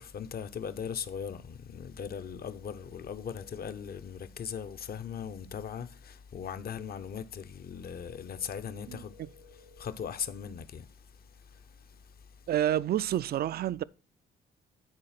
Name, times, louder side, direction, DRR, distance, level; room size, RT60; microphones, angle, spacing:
voice 1, 0.0-9.2 9.8-10.9 11.4-12.0, left 7 dB, 50° left, 0.8 m, -39 dB
sound 1, 2.0-4.0 8.0-10.0, left 3 dB, 85° left, 1.4 m, -57 dB
voice 2, 8.9-9.3 12.5-13.8, right 11 dB, 50° right, 0.4 m, -29 dB
9.9 x 4.3 x 5.8 m
cardioid pair, 90°, 20 cm